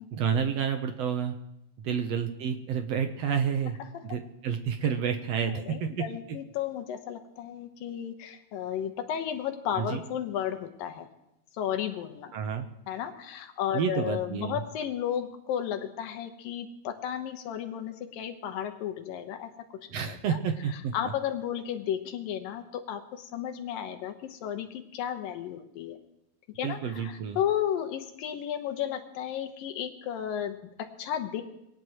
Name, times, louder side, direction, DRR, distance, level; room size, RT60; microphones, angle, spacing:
voice 1, 0.1-1.4 1.8-3.8 4.0-6.0 9.7-10.0 12.3-12.7 13.7-14.6 19.9-20.9 26.6-27.4, right 7 dB, 70° right, 6 dB, 1.6 m, -29 dB
voice 2, 5.5-11.1 11.5-12.3 12.9-20.4 20.7-26.0 26.6-31.4, left 9 dB, 90° left, 6 dB, 2.9 m, -33 dB
23.5 x 18.5 x 3.1 m, 0.85 s
omnidirectional pair, 3.9 m